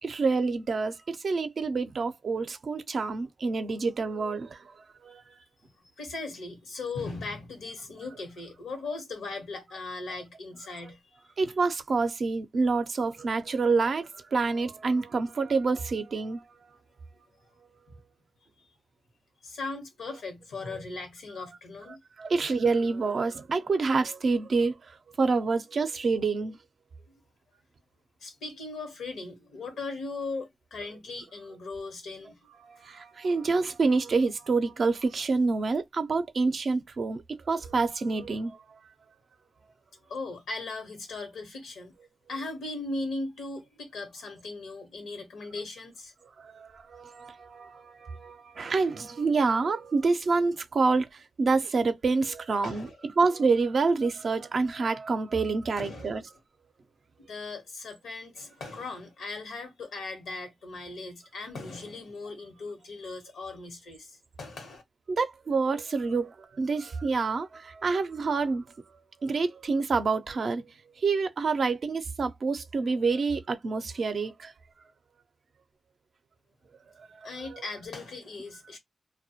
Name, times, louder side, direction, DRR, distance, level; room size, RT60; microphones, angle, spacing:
voice 1, 0.0-4.7 5.0-5.2 11.4-16.4 22.2-26.6 32.6-38.8 46.4-52.9 53.2-56.2 65.1-68.6 69.2-70.6 71.0-74.5 77.0-77.6, right 4 dB, 65° right, 0.4 m, -27 dB
voice 2, 5.8-11.0 18.6-18.7 19.4-22.0 28.2-32.4 40.1-41.9 42.3-46.1 52.6-52.9 55.8-56.2 57.2-64.8 77.2-78.8, left 3 dB, 85° left, 0.9 m, -38 dB
2.1 x 2.0 x 2.8 m
supercardioid pair, 45°, 0 cm